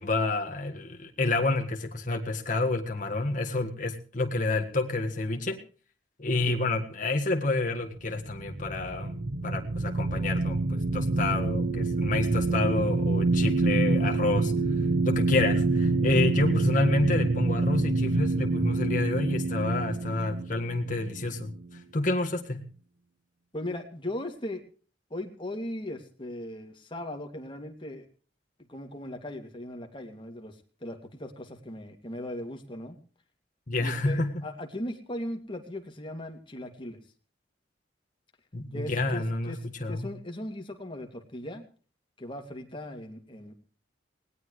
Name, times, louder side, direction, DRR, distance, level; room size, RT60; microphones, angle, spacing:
voice 1, 0.0-5.6 6.2-9.1 9.4-14.5 15.0-22.7 33.7-34.4 38.5-40.1, left 2 dB, 45° left, 3 dB, 1.7 m, -29 dB
sound 1, 8.1-21.8, right 3 dB, 70° right, 0.9 m, -27 dB
voice 2, 23.5-24.6 25.1-28.1 28.7-33.0 33.8-37.0 38.7-41.6 42.2-43.5, left 1 dB, 30° left, 4 dB, 2.5 m, -38 dB
19.5 x 18.5 x 3.2 m, 0.40 s
head